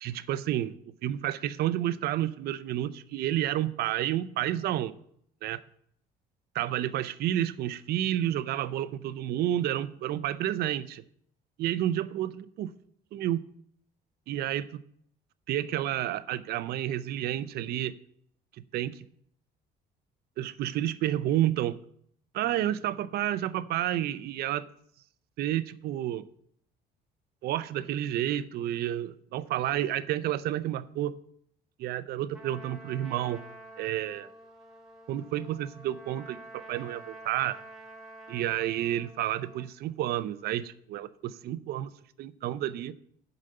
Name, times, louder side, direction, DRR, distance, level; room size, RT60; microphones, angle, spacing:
voice 1, 0.0-0.8 1.0-4.9 5.4-5.6 6.5-11.0 11.6-12.7 13.1-13.4 14.3-14.8 15.5-17.9 18.7-19.1 20.4-21.8 22.3-24.7 25.4-26.3 27.4-31.2 31.8-33.4 33.8-34.3 35.1-37.6 38.3-41.9 42.2-42.9, right 12 dB, 70° right, 15 dB, 0.5 m, -30 dB
Trumpet, 32.3-39.7, right 1 dB, ahead, 1.7 m, -49 dB
7.7 x 5.0 x 6.6 m, 0.66 s
cardioid pair, 110°, 17 cm